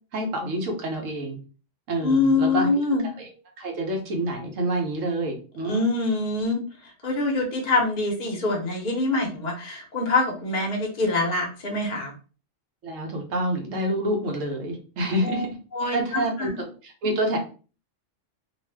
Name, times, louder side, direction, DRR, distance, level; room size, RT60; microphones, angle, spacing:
voice 1, 0.1-1.4 1.9-2.7 3.2-3.3 3.6-5.9 12.8-15.5 15.9-17.4, right 1 dB, 80° right, 2 dB, 1.1 m, -27 dB
voice 2, 2.0-3.0 5.6-6.6 7.0-12.1 15.2-15.5 15.7-16.6, left 3 dB, 45° left, 1 dB, 0.8 m, -24 dB
2.6 x 2.4 x 3.3 m, 0.36 s
omnidirectional pair, 1.3 m